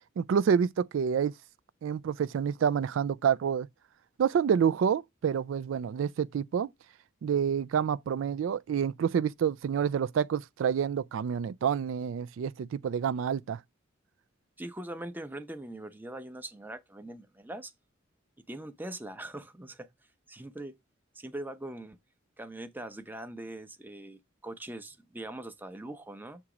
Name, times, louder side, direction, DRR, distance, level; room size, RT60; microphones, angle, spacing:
voice 1, 0.2-1.3 1.8-3.7 4.2-6.7 7.2-13.6, right 7 dB, 70° right, 0.3 m, -28 dB
voice 2, 14.6-17.7 18.5-19.9 20.3-20.7 21.1-22.0 22.4-26.4, right 1 dB, 10° right, 0.7 m, -42 dB
7.1 x 2.9 x 4.9 m
head